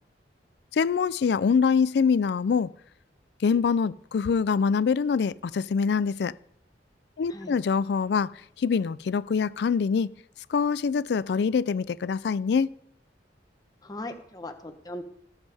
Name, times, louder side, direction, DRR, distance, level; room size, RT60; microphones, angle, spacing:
voice 1, 0.7-2.7 3.4-6.3 7.2-8.3 8.6-10.1 10.5-12.7, left 5 dB, 65° left, 0.3 m, -24 dB
voice 2, 13.8-15.0, left 1 dB, 20° left, 1.0 m, -38 dB
17.5 x 7.3 x 3.4 m
head